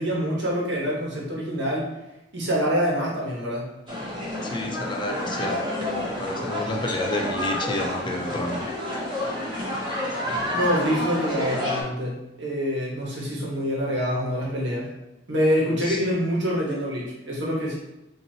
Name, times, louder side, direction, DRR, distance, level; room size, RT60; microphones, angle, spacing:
voice 1, 0.0-1.9 2.3-3.7 10.5-14.8 15.3-17.8, equal, 70° right, -4 dB, 1.2 m, -26 dB
sound 1, 3.9-11.8, left 1 dB, 25° right, 1.0 m, -29 dB
voice 2, 4.4-5.7 6.2-8.6 15.8-16.0, left 1 dB, 25° left, 2 dB, 0.4 m, -29 dB
4.5 x 2.7 x 2.7 m, 0.94 s
head